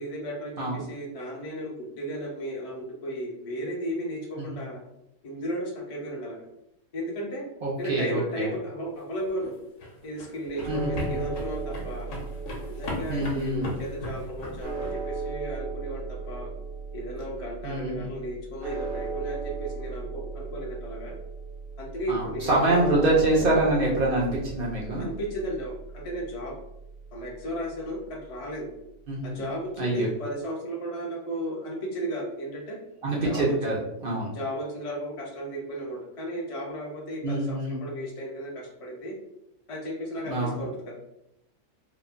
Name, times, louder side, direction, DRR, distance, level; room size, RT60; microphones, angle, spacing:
voice 1, 0.0-4.8 5.2-6.4 6.9-7.4 7.8-9.5 10.0-12.1 12.8-16.5 16.9-21.1 21.8-22.9 25.0-26.5 27.1-28.7 29.2-32.8 33.2-33.8 34.3-39.1 39.7-40.9, equal, 45° left, -3 dB, 0.4 m, -34 dB
voice 2, 7.6-8.5 10.7-11.2 13.1-13.7 17.6-18.1 22.1-25.1 29.1-29.5 29.8-30.1 33.0-34.3 37.2-37.8 40.2-40.6, right 2 dB, 60° right, -4 dB, 0.5 m, -26 dB
sound 1, 9.3-14.9, left 2 dB, 65° left, 1.0 m, -37 dB
sound 2, 10.6-28.9, right 4 dB, 80° right, 1.1 m, -37 dB
3.1 x 2.1 x 2.4 m, 0.82 s
omnidirectional pair, 1.6 m